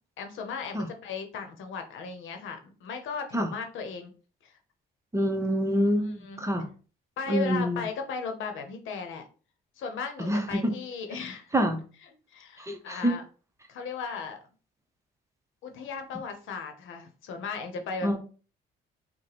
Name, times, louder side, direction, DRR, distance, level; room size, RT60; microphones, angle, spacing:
voice 1, 0.2-4.1 4.4-4.5 6.1-6.4 7.2-9.2 9.8-11.5 12.3-13.2 13.7-14.4 15.6-18.2, left 5 dB, 80° left, 5 dB, 0.8 m, -36 dB
voice 2, 5.1-6.7 7.3-7.8 10.2-10.7 11.5-11.8 12.6-13.2 18.0-18.2, equal, 15° right, 5 dB, 0.7 m, -26 dB
4.8 x 2.2 x 2.9 m, 0.37 s
cardioid pair, 90°, 20 cm